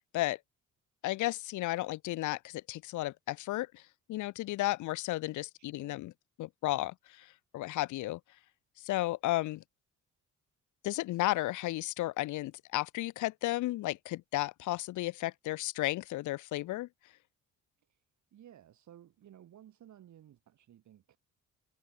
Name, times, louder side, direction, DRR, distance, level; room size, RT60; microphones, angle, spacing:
voice 1, 1.0-3.8 4.1-6.1 6.4-8.2 8.8-9.6 10.8-16.9, left 17 dB, 75° left, 0.6 m, -33 dB
voice 2, 5.6-6.0 17.9-18.0 18.3-21.2, right 11 dB, 70° right, 5.6 m, -56 dB
cardioid pair, 90°, 30 cm